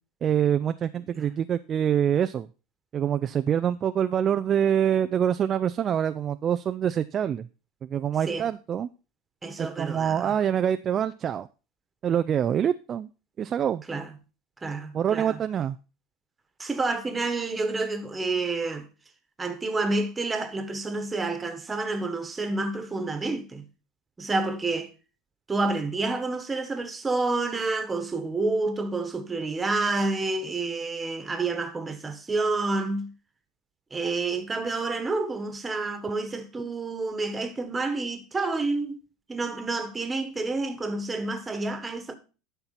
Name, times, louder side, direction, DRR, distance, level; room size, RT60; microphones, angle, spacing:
voice 1, 0.2-2.5 2.9-7.5 7.8-8.9 9.6-11.5 12.0-13.1 13.4-13.8 14.9-15.8, right 9 dB, 35° right, 0.4 m, -25 dB
voice 2, 9.4-10.3 13.9-14.1 14.6-15.4 16.6-18.9 19.4-23.6 24.2-24.9 25.5-33.1 33.9-39.0 39.3-42.2, right 3 dB, 15° right, 1.4 m, -29 dB
11.5 x 4.5 x 5.7 m
supercardioid pair, 120°, 0 cm